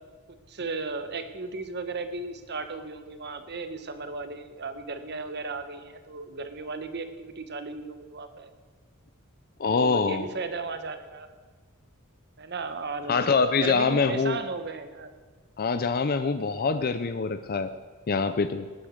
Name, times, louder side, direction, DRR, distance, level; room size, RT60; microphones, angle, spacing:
voice 1, 0.5-8.5 9.6-11.3 12.4-15.1, right 3 dB, 50° right, 9 dB, 1.3 m, -35 dB
voice 2, 9.6-10.2 13.1-14.4 15.6-17.7 18.1-18.7, left 4 dB, 45° left, 10 dB, 0.5 m, -24 dB
18.0 x 10.0 x 6.5 m, 1.5 s
head